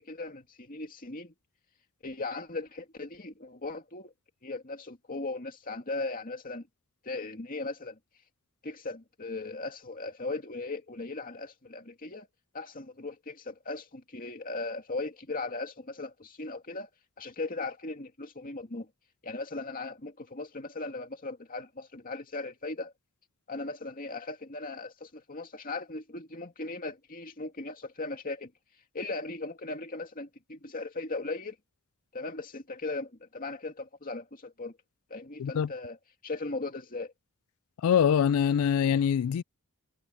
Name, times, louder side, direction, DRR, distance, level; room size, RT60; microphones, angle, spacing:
voice 1, 0.0-1.3 2.0-4.1 4.4-6.7 7.0-8.0 8.6-12.3 12.5-16.9 17.2-18.9 19.2-22.9 23.5-28.5 28.9-31.6 32.1-34.8 35.1-36.0 36.2-37.1, left 3 dB, 40° left, 2.4 m, -38 dB
voice 2, 37.8-39.4, left 8 dB, 70° left, 0.3 m, -24 dB
head